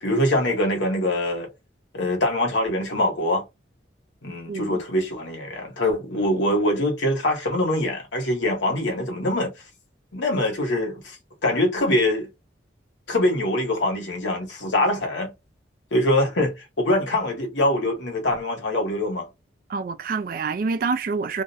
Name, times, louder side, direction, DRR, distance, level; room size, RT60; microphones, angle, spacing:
voice 1, 0.0-1.5 1.9-3.4 4.2-9.5 10.1-11.2 11.4-12.3 13.1-15.3 15.9-19.3, left 1 dB, 80° left, 1.0 m, -23 dB
voice 2, 19.7-21.4, right 4 dB, 45° right, 0.3 m, -27 dB
2.4 x 2.1 x 2.5 m
head